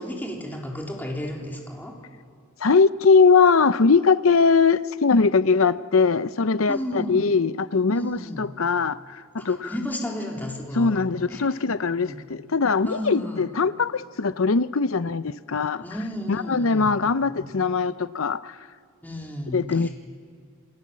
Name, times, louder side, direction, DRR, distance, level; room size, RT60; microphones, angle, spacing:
voice 1, 0.0-1.9 6.7-7.2 7.9-8.5 9.4-11.0 11.3-11.5 11.9-12.2 12.9-13.4 15.8-17.0 19.0-19.9, equal, 10° left, 3.9 m, -33 dB
voice 2, 2.6-9.7 10.7-15.8 16.3-18.5 19.5-19.9, left 4 dB, 80° left, 0.7 m, -21 dB
29.0 x 24.5 x 7.6 m
head